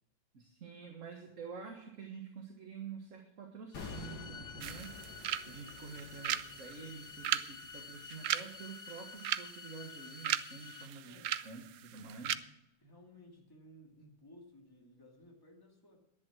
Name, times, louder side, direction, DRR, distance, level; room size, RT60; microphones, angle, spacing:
voice 1, 0.3-4.9 5.5-12.5, right 5 dB, 40° right, 2 dB, 1.7 m, -48 dB
sound 1, 3.7-8.8 9.0-9.2, left 4 dB, 75° left, 2.6 m, -50 dB
sound 2, 3.7-10.9, left 6 dB, 50° left, 0.5 m, -51 dB
sound 3, 4.6-12.4, right 11 dB, 80° right, 0.8 m, -39 dB
voice 2, 12.8-16.0, left 1 dB, 10° left, -1 dB, 2.3 m, -58 dB
11.0 x 10.5 x 6.2 m, 0.84 s
omnidirectional pair, 2.1 m